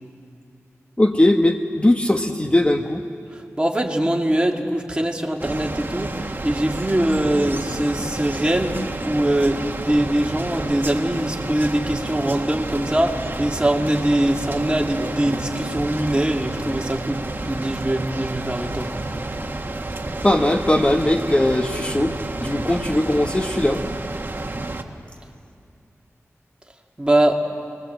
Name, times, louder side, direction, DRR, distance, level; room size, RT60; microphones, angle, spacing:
voice 1, 1.0-3.0 20.2-23.8, left 1 dB, 20° left, 5 dB, 1.0 m, -19 dB
voice 2, 3.3-18.9 27.0-27.4, right 1 dB, 20° right, 1 dB, 2.3 m, -22 dB
sound 1, 5.4-24.8, right 2 dB, 40° right, 1.6 m, -30 dB
27.5 x 21.0 x 7.9 m, 2.6 s
wide cardioid pair, 60°, 5 cm